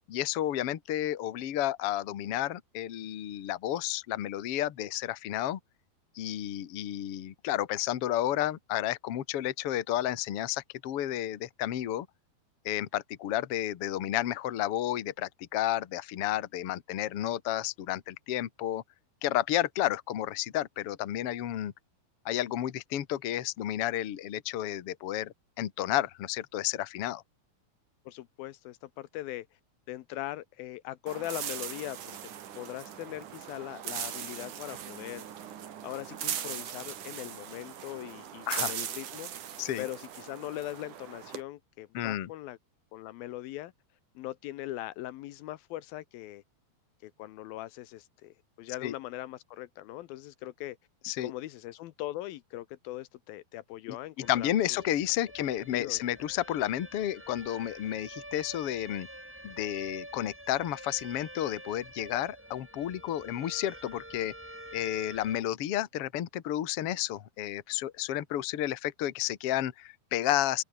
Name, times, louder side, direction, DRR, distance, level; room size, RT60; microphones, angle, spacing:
voice 1, 0.1-5.6 6.2-12.1 12.7-18.8 19.2-21.7 22.3-27.2 38.5-38.7 39.6-39.9 41.9-42.3 48.8-48.9 51.0-51.3 53.9-59.1 59.4-64.3 64.7-70.6, left 13 dB, 55° left, 1.9 m, -31 dB
voice 2, 28.1-29.5 29.9-32.2 32.6-35.2 35.8-39.3 39.8-42.6 42.9-43.7 44.2-46.4 47.0-50.8 51.2-54.5 55.7-56.0, left 15 dB, 80° left, 2.7 m, -40 dB
sound 1, 31.1-41.4, right 9 dB, 60° right, 3.3 m, -39 dB
sound 2, 54.2-65.4, right 1 dB, 5° right, 1.9 m, -47 dB
omnidirectional pair, 4.3 m